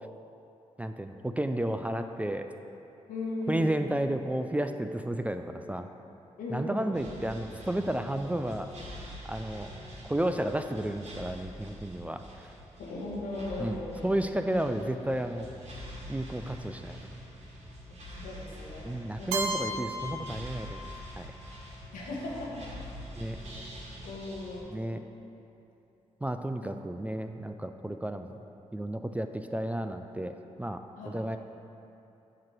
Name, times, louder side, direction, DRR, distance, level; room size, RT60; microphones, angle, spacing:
voice 1, 0.8-2.5 3.5-5.9 6.5-8.7 9.2-9.7 10.0-12.2 13.6-15.5 16.1-17.0 18.8-20.8 21.2-21.3 23.2-23.4 24.7-25.0 26.2-28.3 28.7-31.4, right 1 dB, 10° right, 7 dB, 0.3 m, -32 dB
voice 2, 3.1-3.8 6.4-7.0 12.8-14.0 17.9-18.9 19.2-19.3 21.9-22.7 23.5-23.7 24.0-24.7 31.0-31.2, left 2 dB, 80° left, -3 dB, 1.1 m, -37 dB
sound 1, 6.9-24.6, equal, 55° right, 1.4 m, -45 dB
Keyboard (musical), 19.3-21.2, right 2 dB, 90° right, 0.4 m, -35 dB
7.4 x 3.0 x 5.9 m, 2.9 s
supercardioid pair, 40°, 14 cm